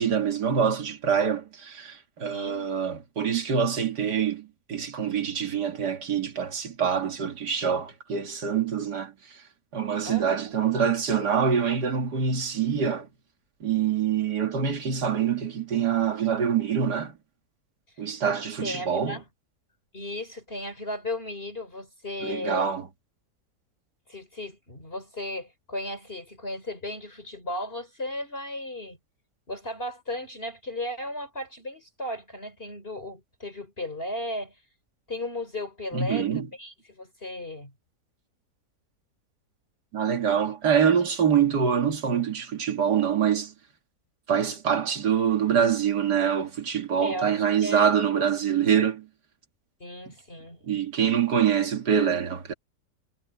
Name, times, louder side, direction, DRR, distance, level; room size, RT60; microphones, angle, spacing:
voice 1, 0.0-9.1 9.7-13.1 13.6-17.2 18.0-19.2 22.2-22.9 35.9-36.5 39.9-43.5 44.3-49.1 50.6-52.5, right 7 dB, 85° right, 2.5 m, -25 dB
voice 2, 2.3-2.7 10.0-10.3 18.6-19.2 19.9-22.7 24.1-29.0 29.5-34.6 35.1-36.3 36.6-37.7 47.0-47.9 49.8-50.6, left 1 dB, 35° left, 4.0 m, -35 dB
omnidirectional pair, 1.7 m